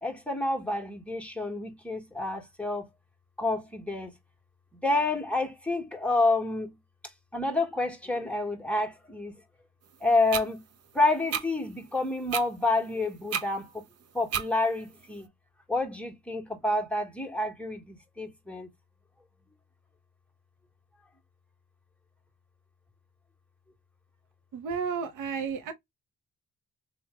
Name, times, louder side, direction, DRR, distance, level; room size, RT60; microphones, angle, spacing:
voice 1, 0.0-2.9 3.4-4.1 4.8-6.7 7.3-9.3 10.0-10.6 10.9-13.7 14.1-15.3 15.7-18.7, left 2 dB, 5° left, 1.4 m, -28 dB
sound 1, 10.3-10.5 11.3-11.5 12.3-12.5 13.3-13.5 14.3-14.5, right 8 dB, 55° right, 0.8 m, -29 dB
voice 2, 24.5-25.7, right 6 dB, 85° right, 1.0 m, -32 dB
3.3 x 2.4 x 4.2 m
cardioid pair, 90°, 30 cm